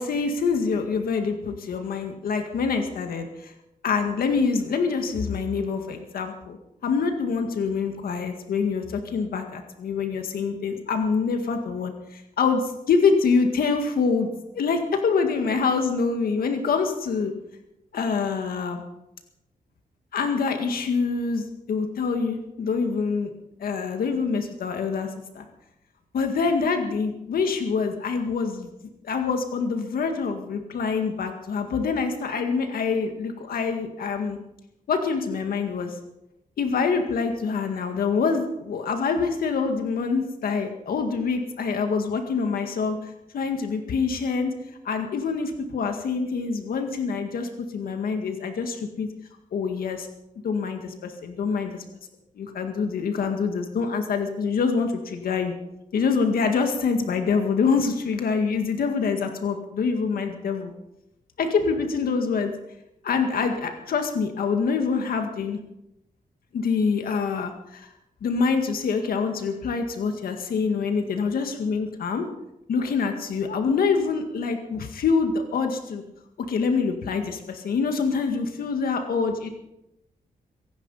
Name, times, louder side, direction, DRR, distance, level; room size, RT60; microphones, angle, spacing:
voice 1, 0.0-3.5 3.8-6.6 6.8-14.3 14.5-17.3 17.9-18.8 20.1-23.3 23.6-25.1 25.3-25.4 26.1-28.7 29.0-34.4 34.9-36.0 36.6-44.5 44.8-49.1 49.5-50.1 50.4-51.8 52.4-55.5 55.9-60.7 61.4-62.5 63.0-65.6 66.5-67.9 68.2-72.3 72.7-76.0 76.5-79.5, left 5 dB, 80° left, 5 dB, 2.0 m, -25 dB
24.0 x 11.0 x 5.6 m, 0.87 s
wide cardioid pair, 140°, 15 cm